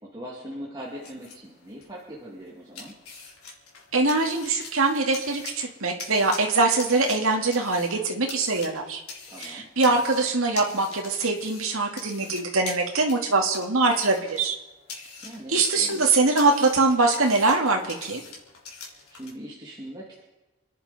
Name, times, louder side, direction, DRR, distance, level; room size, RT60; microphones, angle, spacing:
voice 1, 0.0-2.9 9.3-9.7 15.2-16.1 18.8-20.2, equal, 20° right, -5 dB, 2.4 m, -41 dB
sound 1, 0.8-19.3, left 4 dB, 85° left, 3.7 m, -44 dB
voice 2, 3.9-9.0 9.4-14.6 15.5-18.2, right 3 dB, 75° right, 1 dB, 2.2 m, -23 dB
28.5 x 10.5 x 4.2 m, 1.1 s
head